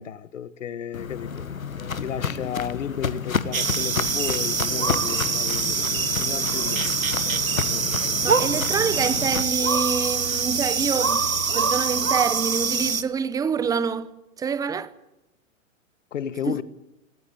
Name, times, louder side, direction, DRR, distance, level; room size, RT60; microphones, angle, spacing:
voice 1, 0.0-1.5 2.0-6.9 7.5-8.0 16.1-16.6, left 8 dB, 65° left, 1.3 m, -33 dB
Walk footsteps, 0.9-9.4, left 6 dB, 85° left, 1.3 m, -31 dB
sound 1, 3.5-13.0, right 5 dB, 90° right, 1.3 m, -24 dB
voice 2, 8.2-11.3 11.5-14.1 14.4-14.9 16.5-16.6, right 6 dB, 10° right, 0.7 m, -26 dB
18.0 x 18.0 x 9.9 m
figure-of-eight pair, 115°, 40 cm